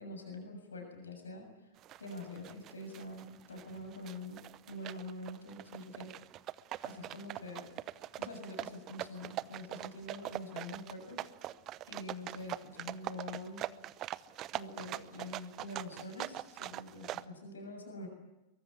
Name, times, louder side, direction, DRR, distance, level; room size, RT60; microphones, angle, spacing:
voice 1, 0.0-4.4 4.7-6.1 6.8-7.7 8.2-11.2 11.9-13.6 14.5-18.1, left 2 dB, 75° left, 4 dB, 7.0 m, -45 dB
sound 1, 1.8-17.2, right 14 dB, 35° right, 0.8 m, -42 dB
23.5 x 23.0 x 8.7 m, 0.99 s
figure-of-eight pair, 90°, 0 cm